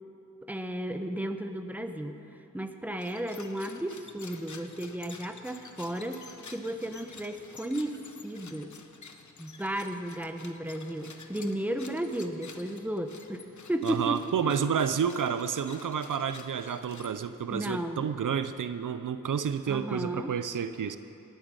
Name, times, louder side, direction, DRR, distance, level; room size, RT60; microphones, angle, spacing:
voice 1, 0.5-2.2 2.5-6.3 6.5-8.0 8.2-8.7 9.4-14.2 14.4-14.6 17.5-18.1 19.7-20.3, right 1 dB, 5° right, 7 dB, 0.9 m, -34 dB
sound 1, 2.9-17.5, left 5 dB, 65° left, 1.0 m, -50 dB
voice 2, 13.8-21.0, right 7 dB, 80° right, 11 dB, 0.6 m, -30 dB
18.0 x 9.2 x 6.4 m, 2.8 s
wide cardioid pair, 65°, 32 cm